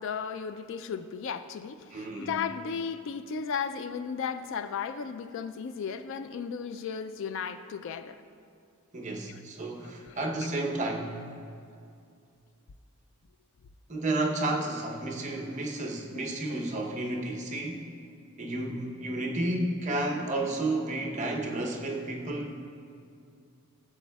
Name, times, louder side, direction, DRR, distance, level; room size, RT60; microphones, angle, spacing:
voice 1, 0.0-8.2 9.2-9.4 10.1-10.2, left 6 dB, 60° left, 11 dB, 0.3 m, -35 dB
voice 2, 1.9-2.4 8.9-11.2 13.9-17.9 18.4-22.5, right 2 dB, 30° right, 1 dB, 0.8 m, -31 dB
15.5 x 7.1 x 2.3 m, 2.4 s
head